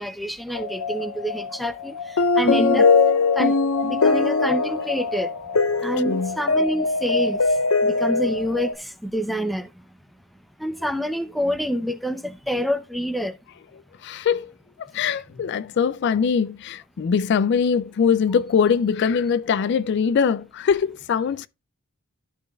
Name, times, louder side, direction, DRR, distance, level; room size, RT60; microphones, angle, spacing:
voice 1, 0.0-2.9 3.4-5.3 5.8-7.4 7.8-9.7 10.6-13.4, equal, ahead, 0.6 m, -27 dB
sound 1, 0.6-8.7, left 4 dB, 85° left, 0.7 m, -21 dB
voice 2, 2.4-2.8 6.0-6.4 14.0-14.5 14.8-21.5, left 6 dB, 50° left, 0.3 m, -22 dB
13.0 x 5.1 x 2.3 m
head